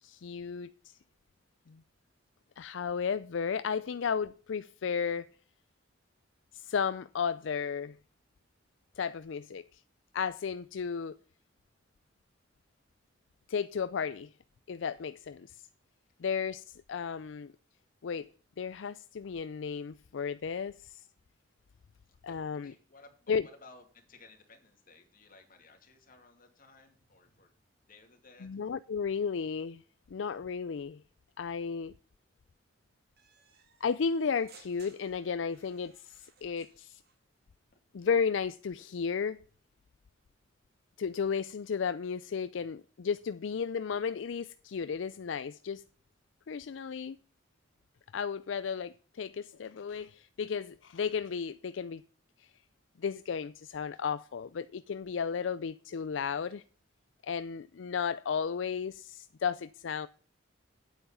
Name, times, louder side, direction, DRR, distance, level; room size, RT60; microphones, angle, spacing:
voice 1, 0.0-1.0 1.7-1.8 2.6-5.3 6.5-8.0 9.0-9.8 10.1-11.2 13.5-14.3 14.7-15.7 16.2-17.5 18.0-18.3 18.6-21.1 22.2-22.7 23.3-23.5 28.4-29.8 30.1-31.0 31.4-31.9 33.8-37.0 37.9-39.4 41.0-45.8 46.5-47.2 48.1-52.0 52.4-52.5 53.0-56.6 57.2-60.1, left 6 dB, 70° left, 0.4 m, -34 dB
voice 2, 22.0-27.5 27.8-28.5, left 3 dB, 45° left, 2.6 m, -57 dB
sound 1, 33.2-37.2, right 6 dB, 55° right, 2.4 m, -61 dB
9.3 x 8.7 x 5.6 m
head